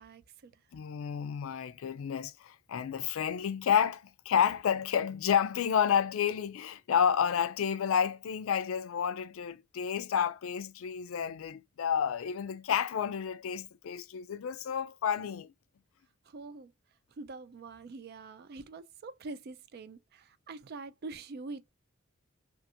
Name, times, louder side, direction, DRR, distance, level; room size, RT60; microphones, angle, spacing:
voice 1, 0.0-0.6 16.2-16.7 17.1-21.7, right 3 dB, 50° right, 0.4 m, -45 dB
voice 2, 0.7-15.5, left 8 dB, 80° left, 0.4 m, -30 dB
2.7 x 2.4 x 2.5 m
head